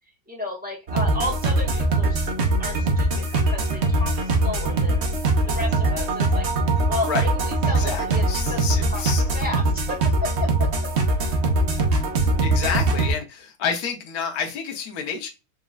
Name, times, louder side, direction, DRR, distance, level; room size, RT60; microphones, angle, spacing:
voice 1, 0.3-2.3 2.6-5.1 5.5-6.5 6.9-8.6 8.9-9.0 9.3-10.7, left 2 dB, 5° right, 1.7 m, -33 dB
sound 1, 0.9-13.1, right 2 dB, 50° right, 0.8 m, -22 dB
voice 2, 6.7-7.3 7.6-9.2 12.4-15.3, left 6 dB, 60° left, 1.3 m, -29 dB
4.2 x 3.6 x 2.4 m
omnidirectional pair, 2.0 m